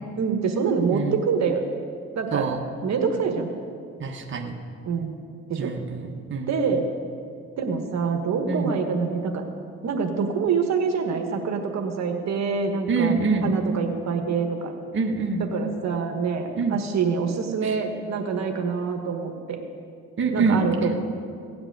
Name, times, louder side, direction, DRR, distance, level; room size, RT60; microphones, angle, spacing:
voice 1, 0.2-1.6 2.1-2.5 2.8-3.5 4.8-5.2 5.5-5.7 6.5-6.8 7.6-9.5 9.8-13.1 13.4-14.7 15.5-19.6 20.3-21.0, right 5 dB, 65° right, 4 dB, 1.4 m, -26 dB
voice 2, 4.0-4.6 5.6-6.5 8.5-8.8 12.9-13.5 14.9-15.4 16.6-16.8 17.6-17.8 20.2-20.6, right 4 dB, 40° right, 2 dB, 1.4 m, -25 dB
16.5 x 6.0 x 9.3 m, 2.3 s
cardioid pair, 90°, 30 cm